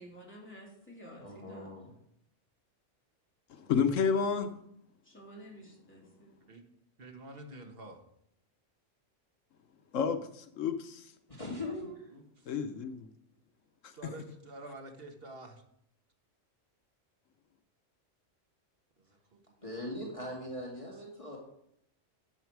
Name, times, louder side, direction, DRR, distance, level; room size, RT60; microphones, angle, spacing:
voice 1, 0.0-1.7 5.0-6.3, equal, 10° left, 3.3 m, -51 dB
voice 2, 1.2-1.9 11.3-12.1 19.6-21.4, left 1 dB, 25° left, 2.2 m, -40 dB
voice 3, 3.5-4.5 9.9-11.1 12.5-13.1 13.8-13.9, left 6 dB, 80° left, 1.2 m, -30 dB
voice 4, 7.0-8.0 12.1-12.6 13.9-15.6 19.0-19.9 20.1-20.5 20.9-21.0, right 2 dB, 50° right, 1.7 m, -49 dB
11.5 x 8.0 x 4.7 m
omnidirectional pair, 1.3 m